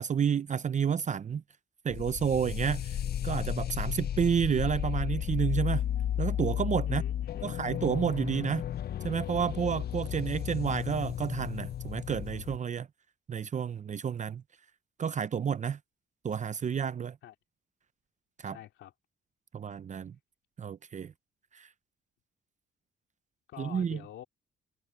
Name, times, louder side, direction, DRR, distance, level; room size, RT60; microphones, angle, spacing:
voice 1, 0.0-1.4 1.8-5.8 6.2-7.0 7.4-8.7 9.0-12.9 13.3-14.4 15.0-15.8 16.2-17.2 18.4-18.6 19.5-20.2 20.6-21.1 21.5-21.7 23.6-24.0, right 7 dB, 40° right, 0.6 m, -30 dB
sound 1, 1.9-12.6, left 10 dB, 50° left, 0.6 m, -33 dB
voice 2, 6.8-7.5 17.2-17.3 18.4-18.9 23.5-24.2, left 12 dB, 80° left, 3.1 m, -46 dB
cardioid pair, 90°, 20 cm